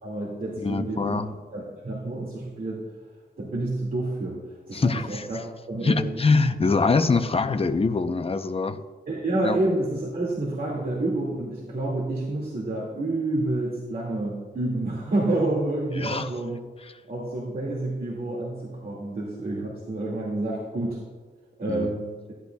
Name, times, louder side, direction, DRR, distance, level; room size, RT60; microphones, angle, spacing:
voice 1, 0.0-1.2 1.5-2.8 3.4-4.4 4.7-6.1 9.1-16.6 17.1-21.0 21.6-22.2, right 2 dB, 55° right, -4 dB, 2.1 m, -29 dB
voice 2, 0.6-1.3 4.7-5.2 5.8-8.8 9.4-9.6 16.0-16.3 21.7-21.9, left 4 dB, 30° left, 9 dB, 0.6 m, -23 dB
15.0 x 11.0 x 2.3 m, 1.4 s
wide cardioid pair, 90°, 18 cm